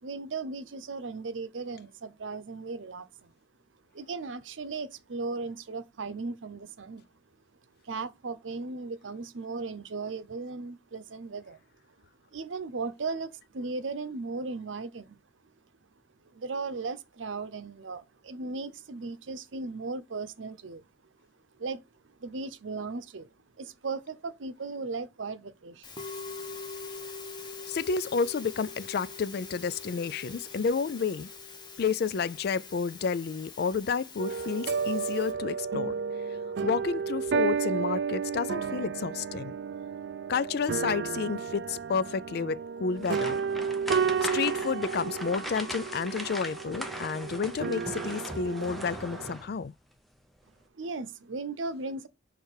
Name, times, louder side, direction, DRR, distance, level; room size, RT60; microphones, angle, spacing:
voice 1, 0.0-3.3 3.9-7.0 7.8-11.6 12.3-15.2 16.3-20.8 21.6-21.8 22.2-23.3 23.6-25.9 50.7-52.1, right 3 dB, 90° right, 0.7 m, -36 dB
Musical instrument, 25.8-35.3, left 4 dB, 25° left, 1.2 m, -43 dB
voice 2, 27.7-31.3 31.8-35.9 36.6-39.5 40.3-43.4 44.3-49.7, left 5 dB, 55° left, 0.4 m, -30 dB
sound 1, 34.2-49.3, right 6 dB, 60° right, 0.3 m, -32 dB
sound 2, 43.0-49.6 50.0-50.2 50.6-50.7, equal, ahead, 0.7 m, -40 dB
6.3 x 3.3 x 4.8 m
head